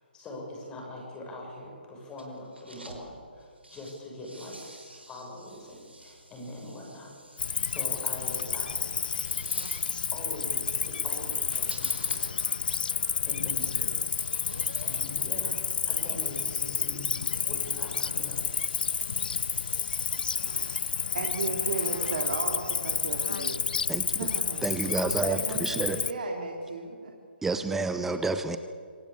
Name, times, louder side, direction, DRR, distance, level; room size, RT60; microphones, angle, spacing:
voice 1, 0.0-9.0 10.1-12.5 13.2-14.2 14.8-15.6 15.9-18.4, left 1 dB, 15° left, -1 dB, 6.6 m, -43 dB
sound 1, 2.1-3.0 3.4-20.9, right 2 dB, 80° right, 4.8 m, -51 dB
Cricket, 7.4-26.1, left 6 dB, 55° left, 0.6 m, -30 dB
voice 2, 21.1-23.7 24.1-24.6 25.0-27.1, right 3 dB, 50° right, 1 dB, 2.8 m, -35 dB
voice 3, 24.6-26.0 27.4-28.6, right 3 dB, 5° right, 10 dB, 0.7 m, -29 dB
25.5 x 17.5 x 8.6 m, 2.2 s
figure-of-eight pair, 135°, 6 cm